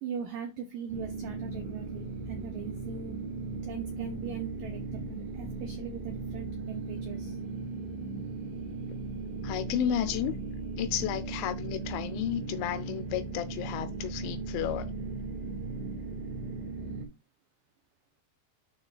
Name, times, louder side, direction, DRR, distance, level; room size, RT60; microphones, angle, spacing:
voice 1, 0.0-3.2 3.6-7.4, right 8 dB, 85° right, 1.9 m, -40 dB
sound 1, 0.9-17.1, right 3 dB, 70° right, 3.8 m, -37 dB
voice 2, 9.4-10.3 10.8-14.9, left 11 dB, 85° left, 3.1 m, -32 dB
11.5 x 4.1 x 2.3 m
omnidirectional pair, 5.2 m